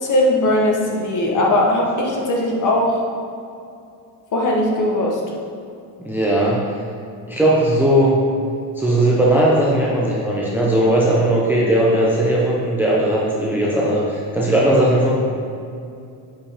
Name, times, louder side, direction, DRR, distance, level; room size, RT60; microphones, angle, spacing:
voice 1, 0.0-3.0 4.3-5.2, left 1 dB, 40° left, -1 dB, 1.3 m, -19 dB
voice 2, 6.0-6.6 7.3-8.1 8.8-15.1, right 1 dB, 5° right, -5 dB, 0.7 m, -17 dB
7.4 x 5.2 x 5.0 m, 2.5 s
cardioid pair, 165°, 49 cm